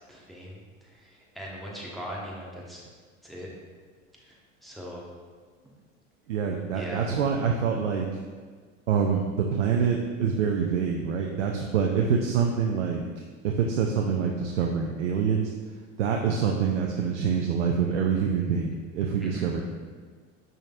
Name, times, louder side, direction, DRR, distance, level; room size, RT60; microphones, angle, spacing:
voice 1, 0.1-2.8 3.2-3.5 4.2-4.4 4.6-5.1 6.7-7.1 19.2-19.5, equal, ahead, -4 dB, 1.2 m, -40 dB
voice 2, 6.3-8.1 8.9-13.1 13.4-15.5 16.0-19.6, right 6 dB, 65° right, 1 dB, 0.6 m, -26 dB
10.0 x 3.9 x 2.5 m, 1.5 s
figure-of-eight pair, 75°, 38 cm